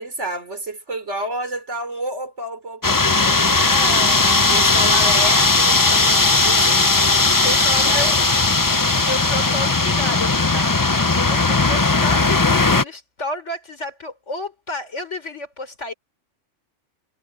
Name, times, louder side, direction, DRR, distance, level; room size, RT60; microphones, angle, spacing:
voice 1, 0.0-3.0 4.5-6.8 7.9-8.2, right 1 dB, 65° right, 4.0 m, -29 dB
sound 1, 2.8-12.8, left 3 dB, 20° left, 0.6 m, -17 dB
voice 2, 3.2-4.5 7.4-8.5 9.0-15.9, left 2 dB, 65° left, 4.3 m, -31 dB
omnidirectional pair, 1.3 m